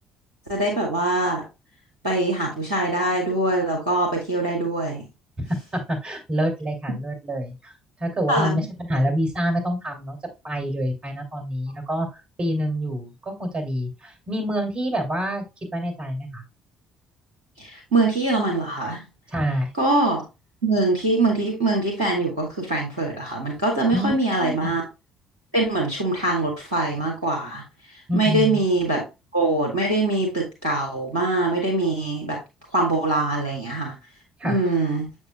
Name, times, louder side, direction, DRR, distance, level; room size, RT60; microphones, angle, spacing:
voice 1, 0.5-1.4 2.0-5.0 8.3-8.7 17.6-19.0 19.8-20.2 20.6-24.8 25.5-29.0 29.3-32.4 32.7-33.9 34.4-35.1, right 2 dB, 85° right, 0 dB, 1.3 m, -23 dB
voice 2, 5.7-10.2 10.4-15.4 15.7-16.4 19.3-19.7 23.9-24.7 28.1-28.6 34.4-34.6, equal, 35° right, 3 dB, 2.7 m, -27 dB
7.0 x 6.2 x 2.2 m, 0.25 s
figure-of-eight pair, 50°, 3 cm